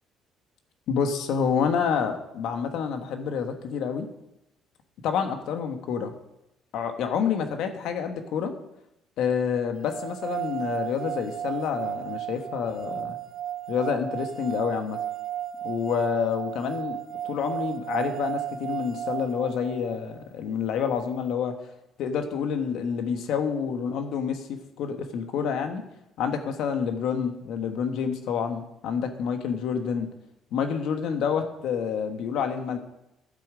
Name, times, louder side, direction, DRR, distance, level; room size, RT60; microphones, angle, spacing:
voice 1, 0.9-4.1 5.0-6.1 6.7-8.5 9.2-13.2 13.7-15.0 15.6-17.0 17.2-21.5 22.0-25.8 26.2-30.1 30.5-32.8, left 7 dB, 70° left, 7 dB, 1.3 m, -28 dB
sound 1, 9.9-20.0, right 10 dB, 50° right, 0.7 m, -34 dB
11.5 x 7.3 x 5.0 m, 0.87 s
cardioid pair, 100°, 0 cm